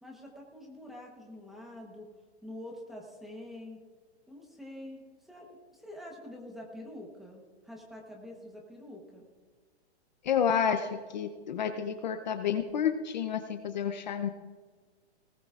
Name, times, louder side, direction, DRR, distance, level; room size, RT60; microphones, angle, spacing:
voice 1, 0.0-2.1 2.4-3.8 4.3-9.3, left 1 dB, ahead, -1 dB, 1.0 m, -46 dB
voice 2, 10.2-14.3, left 8 dB, 40° left, 8 dB, 0.7 m, -30 dB
19.0 x 18.0 x 2.4 m, 1.5 s
hypercardioid pair, 175°, 34 cm